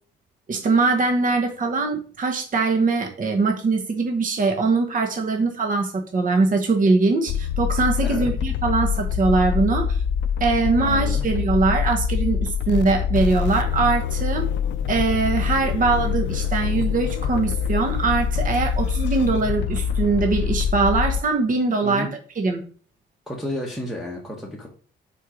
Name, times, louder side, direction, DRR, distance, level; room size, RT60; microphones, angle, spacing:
voice 1, 0.5-10.0 10.4-14.5 14.9-22.1 22.4-22.6, right 3 dB, 40° right, 3 dB, 1.1 m, -22 dB
sound 1, 7.3-21.2, left 7 dB, 65° left, 0.4 m, -25 dB
voice 2, 10.8-11.2 21.8-22.1 23.3-24.7, left 1 dB, ahead, -3 dB, 1.5 m, -31 dB
4.4 x 4.4 x 5.1 m, 0.42 s
cardioid pair, 90°, 20 cm